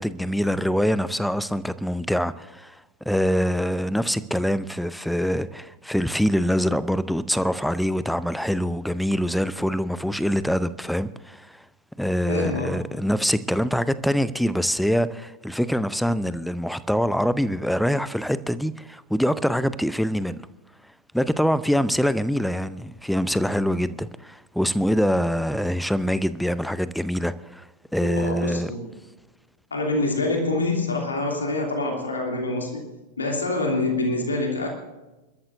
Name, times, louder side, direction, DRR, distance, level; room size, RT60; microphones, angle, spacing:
voice 1, 0.0-2.8 3.1-11.6 12.0-20.5 21.1-27.7 27.9-28.7, equal, ahead, 0.6 m, -24 dB
voice 2, 12.3-12.8 28.0-28.9 29.7-32.9 33.2-34.7, left 2 dB, 75° left, 2.8 m, -26 dB
29.5 x 13.0 x 2.6 m
figure-of-eight pair, 90°, 0 cm